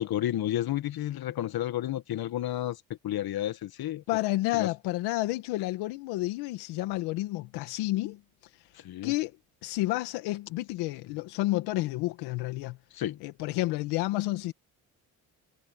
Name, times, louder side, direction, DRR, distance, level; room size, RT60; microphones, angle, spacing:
voice 1, 0.0-2.8 3.0-4.0 4.5-4.7 8.8-9.1 12.9-13.2, left 12 dB, 70° left, 2.0 m, -31 dB
voice 2, 4.1-8.2 9.0-9.3 9.6-12.8 13.2-14.5, left 18 dB, 90° left, 1.5 m, -30 dB
supercardioid pair, 60°, 39 cm